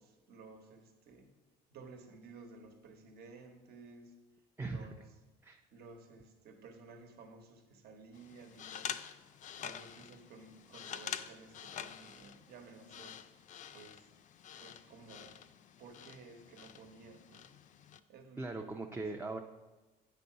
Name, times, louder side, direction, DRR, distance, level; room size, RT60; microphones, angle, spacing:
voice 1, 0.0-1.3 1.7-4.2 4.6-5.0 5.7-9.0 9.6-13.5 13.7-14.1 14.6-15.4 15.8-17.5 18.1-19.1, right 3 dB, 70° right, 5 dB, 1.1 m, -55 dB
voice 2, 4.6-4.9 5.4-5.6 18.4-19.4, right 3 dB, 15° right, 3 dB, 0.4 m, -40 dB
sound 1, 8.1-18.0, left 9 dB, 50° left, 0.4 m, -47 dB
9.2 x 4.0 x 5.7 m, 1.2 s
cardioid pair, 110°, 17 cm